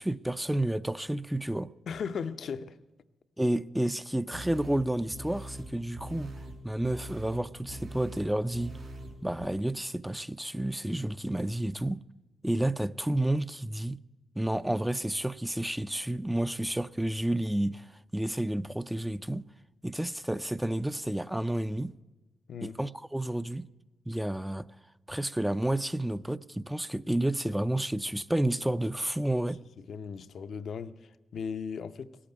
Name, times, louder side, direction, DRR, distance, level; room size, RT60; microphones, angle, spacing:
voice 1, 0.0-1.7 3.4-6.3 6.6-8.8 9.2-12.0 12.4-14.0 14.4-17.9 18.1-19.4 19.8-21.9 22.6-23.7 24.1-24.7 25.1-29.6, right 1 dB, 5° right, 0.5 m, -30 dB
voice 2, 1.9-2.8 22.5-22.8 29.8-32.2, left 6 dB, 70° left, 0.6 m, -37 dB
sound 1, 4.3-9.5, equal, 80° right, 3.5 m, -43 dB
18.0 x 8.6 x 9.1 m
supercardioid pair, 50°, 0 cm